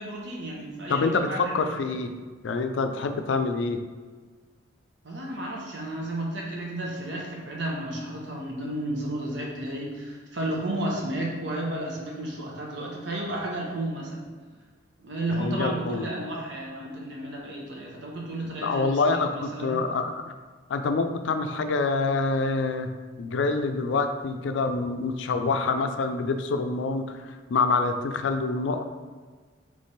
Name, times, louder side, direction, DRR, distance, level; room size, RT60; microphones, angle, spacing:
voice 1, 0.0-2.0 5.0-14.2 15.0-19.8, right 1 dB, 65° right, -2 dB, 1.0 m, -33 dB
voice 2, 0.9-2.1 2.4-3.8 15.3-16.1 18.4-20.3 20.7-22.9 23.2-28.9, left 3 dB, 75° left, 7 dB, 0.4 m, -26 dB
3.4 x 3.3 x 4.1 m, 1.5 s
head